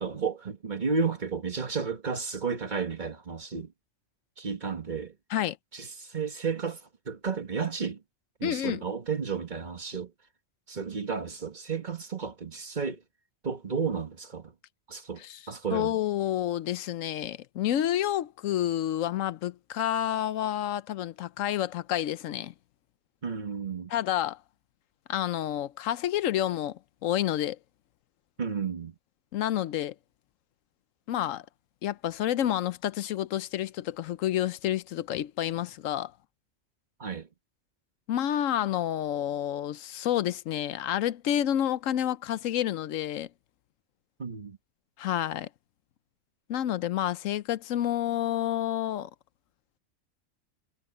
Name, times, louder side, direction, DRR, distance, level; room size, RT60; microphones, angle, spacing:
voice 1, 0.0-3.7 4.4-5.1 5.7-8.0 8.4-10.1 10.7-13.0 13.4-14.5 14.9-16.0 23.2-23.9 28.4-28.9 37.0-37.3 44.2-44.6, right 5 dB, 35° right, 1.4 m, -32 dB
voice 2, 8.4-8.8 15.2-15.4 15.7-22.5 23.9-24.4 25.1-27.6 29.3-29.9 31.1-31.4 31.8-36.1 38.1-43.3 45.0-45.5 46.5-49.1, left 11 dB, 80° left, 1.0 m, -29 dB
omnidirectional pair, 1.4 m